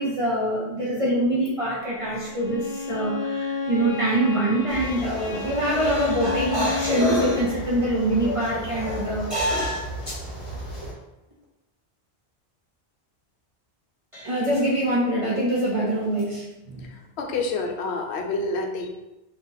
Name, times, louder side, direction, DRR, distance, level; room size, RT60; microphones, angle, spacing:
voice 1, 0.0-10.2 14.1-16.9, right 1 dB, 40° right, -7 dB, 0.6 m, -24 dB
Bowed string instrument, 2.3-7.6, left 4 dB, 55° left, 0.5 m, -31 dB
sound 1, 4.7-10.9, left 1 dB, 35° left, 1.0 m, -35 dB
voice 2, 16.8-18.9, left 3 dB, 75° left, 3 dB, 0.8 m, -28 dB
2.8 x 2.5 x 3.8 m, 0.95 s
omnidirectional pair, 1.1 m